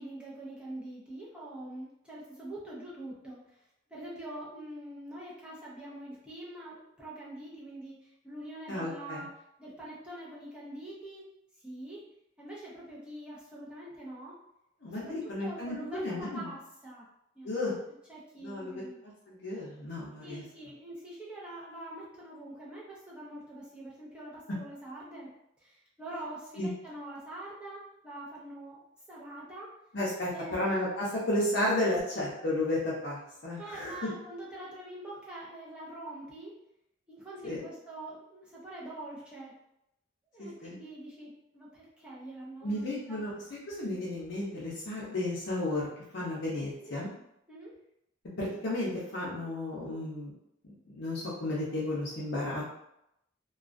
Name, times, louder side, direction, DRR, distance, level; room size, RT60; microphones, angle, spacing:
voice 1, 0.0-3.6 3.9-9.3 9.6-11.2 11.6-12.0 12.4-14.4 14.9-17.1 17.4-17.6 18.1-19.0 20.2-25.3 25.6-28.8 29.1-29.7 30.3-30.6 33.6-36.6 37.1-39.5 40.3-43.2 46.8-47.0 47.5-47.7, right 1 dB, 5° right, -7 dB, 0.6 m, -44 dB
voice 2, 8.7-9.3 14.8-16.5 17.4-17.7 18.4-20.4 26.6-26.7 29.9-34.0 37.4-37.6 40.4-40.8 42.6-43.3 43.7-45.9 46.1-47.1 48.4-50.3 50.6-52.6, left 1 dB, 65° left, -7 dB, 0.6 m, -33 dB
2.3 x 2.2 x 2.4 m, 0.80 s
head